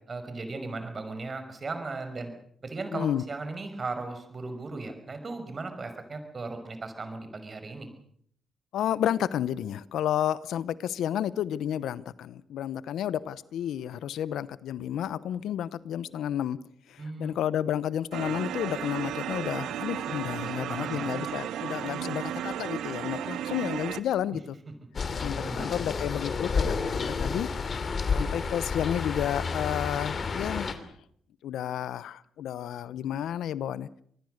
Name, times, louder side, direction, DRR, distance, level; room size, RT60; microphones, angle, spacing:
voice 1, 0.1-2.3 2.6-7.9 17.0-17.4 20.3-21.1 25.2-25.9, right 3 dB, 35° right, 8 dB, 5.6 m, -37 dB
voice 2, 2.9-3.2 8.7-16.6 16.9-24.5 25.2-27.5 28.1-30.8 31.4-34.0, left 10 dB, 85° left, 17 dB, 0.9 m, -31 dB
sound 1, 18.1-24.0, right 10 dB, 90° right, 1.3 m, -34 dB
sound 2, 24.9-30.7, left 5 dB, 45° left, 2.9 m, -30 dB
25.5 x 20.5 x 6.6 m, 0.64 s
cardioid pair, 100°, 0 cm